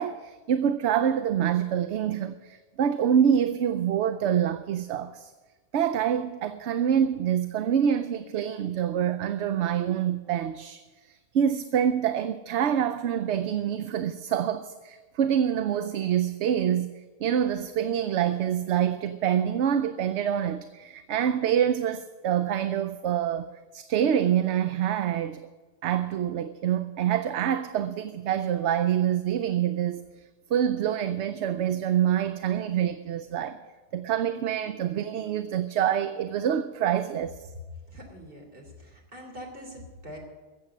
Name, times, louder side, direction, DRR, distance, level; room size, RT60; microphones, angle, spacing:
voice 1, 0.0-5.3 5.7-25.4 25.8-30.0 30.5-33.6 33.9-37.5, right 9 dB, 80° right, 0.9 m, -26 dB
voice 2, 37.9-40.2, equal, 50° right, 3.3 m, -44 dB
14.5 x 7.9 x 9.8 m
omnidirectional pair, 1.2 m